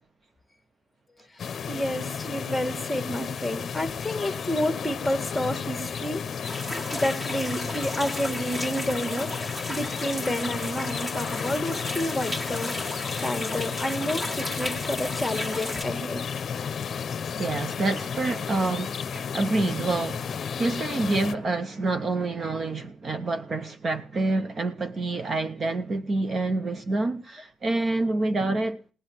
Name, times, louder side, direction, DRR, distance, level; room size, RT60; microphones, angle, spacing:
sound 1, 1.4-21.3, left 7 dB, 40° left, 0.8 m, -33 dB
voice 1, 1.7-6.3 6.9-9.3 9.7-12.7 13.2-16.2, left 1 dB, 5° left, 1.6 m, -30 dB
sound 2, 6.4-15.8, left 1 dB, 15° right, 1.8 m, -34 dB
voice 2, 17.4-28.8, right 2 dB, 30° right, 0.7 m, -27 dB
19.0 x 7.9 x 9.0 m
cardioid pair, 160°, 0 cm